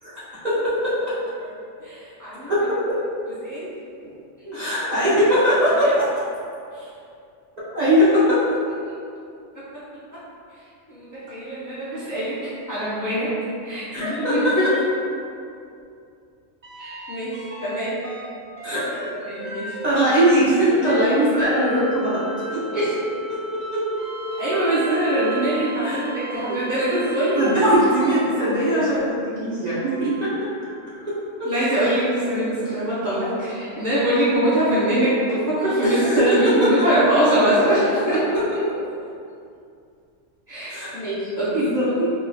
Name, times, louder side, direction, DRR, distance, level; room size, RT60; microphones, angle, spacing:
voice 1, 0.0-0.9 2.5-3.0 4.5-6.1 7.7-8.4 13.9-14.5 18.6-18.8 19.8-22.2 22.5-22.8 23.7-23.8 25.8-26.0 27.3-30.3 31.0-31.1 31.4-31.5 35.8-36.2 38.3-38.4 40.7-40.9 41.4-42.1, equal, 35° right, -11 dB, 0.9 m, -20 dB
voice 2, 1.8-2.5 3.4-3.7 4.0-4.1 4.5-4.6 5.7-5.9 6.7-6.9 8.8-8.9 10.9-13.3 13.6-14.6 16.8-18.0 19.1-19.7 22.7-22.9 24.4-27.7 31.4-38.2 40.5-41.6, right 1 dB, 20° left, -12 dB, 0.6 m, -23 dB
sound 1, 16.6-17.7 18.0-28.8 29.7-31.2 32.9-33.0, right 2 dB, 65° right, 0.3 m, -34 dB
3.5 x 3.3 x 2.3 m, 2.5 s
omnidirectional pair, 1.3 m